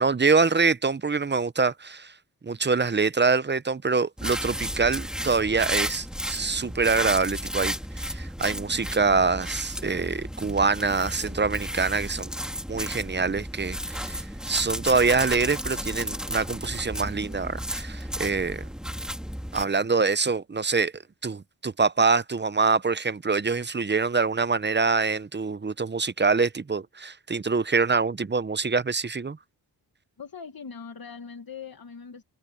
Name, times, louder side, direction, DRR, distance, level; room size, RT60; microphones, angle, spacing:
voice 1, 0.0-2.1 2.4-12.3 12.7-18.7 19.5-29.4, right 4 dB, 25° right, 0.8 m, -25 dB
sound 1, 4.2-19.7, equal, ahead, 2.0 m, -33 dB
voice 2, 30.2-32.2, left 6 dB, 60° left, 1.9 m, -41 dB
cardioid pair, 60°, 40 cm